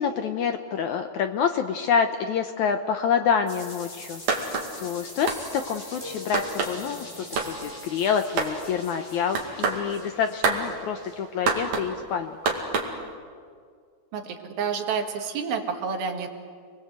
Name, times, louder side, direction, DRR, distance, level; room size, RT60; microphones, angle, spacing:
voice 1, 0.0-4.2 4.8-12.5, left 7 dB, 75° left, 7 dB, 1.9 m, -27 dB
sound 1, 3.5-12.0, left 1 dB, 45° left, 8.0 m, -45 dB
sound 2, 4.3-4.7 5.3-5.4 6.3-6.7 7.4-7.5 8.4-8.5 9.4-9.8 10.4-10.6 11.5-11.9 12.5-12.9, right 4 dB, 50° right, 3.3 m, -25 dB
sound 3, 5.3-8.6, left 1 dB, 10° right, 2.2 m, -43 dB
voice 2, 14.1-16.3, right 6 dB, 80° right, 4 dB, 3.7 m, -29 dB
29.0 x 21.0 x 8.0 m, 2.1 s
omnidirectional pair, 4.2 m